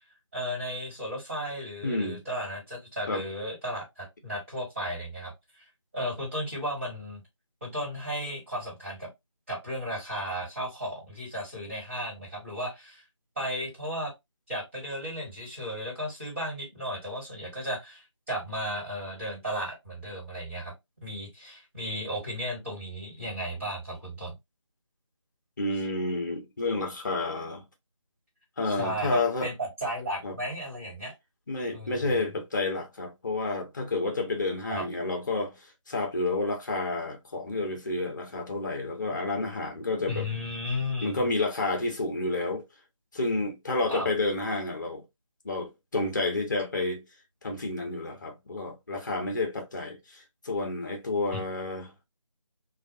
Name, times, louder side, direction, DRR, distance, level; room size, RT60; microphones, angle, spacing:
voice 1, 0.3-5.7 5.9-7.2 7.6-9.1 9.5-13.0 13.3-14.1 14.5-20.7 21.0-24.3 28.6-31.1 31.7-32.3 34.7-34.8 40.1-41.3 43.9-44.1 51.3-51.4, equal, 25° right, 1.6 m, -34 dB
voice 2, 1.8-2.2 3.1-3.2 25.6-27.6 28.6-29.5 30.2-30.3 31.5-35.6 35.9-40.3 41.0-42.6 43.1-45.0 45.4-47.0 47.4-51.9, left 2 dB, 35° left, 0.7 m, -30 dB
2.3 x 2.3 x 2.6 m
figure-of-eight pair, 165°, 16 cm